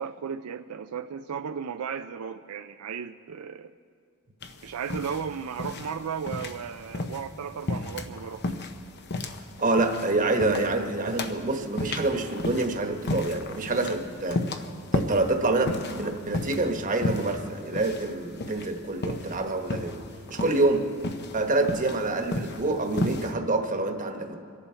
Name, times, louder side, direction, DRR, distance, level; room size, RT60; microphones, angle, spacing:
voice 1, 0.0-3.7 4.6-8.5, right 7 dB, 85° right, 9 dB, 0.4 m, -35 dB
sound 1, 4.4-23.3, left 2 dB, 50° left, 0.9 m, -34 dB
voice 2, 9.6-14.4 14.9-20.0 20.3-20.8 21.3-24.4, right 2 dB, 40° right, 4 dB, 1.2 m, -26 dB
25.5 x 11.0 x 4.5 m, 2.3 s
head